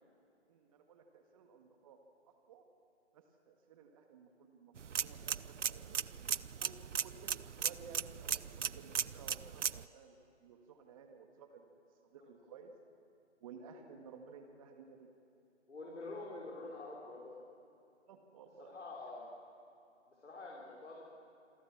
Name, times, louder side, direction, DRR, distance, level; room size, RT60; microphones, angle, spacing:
voice 1, 0.5-2.0 2.3-2.6 3.1-6.0 6.6-11.7 12.1-12.7 13.4-15.1 18.1-18.7, right 5 dB, 30° right, 5 dB, 1.9 m, -56 dB
sound 1, 4.8-9.8, right 7 dB, 80° right, 0.7 m, -38 dB
voice 2, 15.7-17.4 18.6-19.3 20.1-21.0, left 2 dB, 75° left, -3 dB, 5.3 m, -47 dB
27.5 x 23.5 x 7.4 m, 2.7 s
figure-of-eight pair, 150°, 36 cm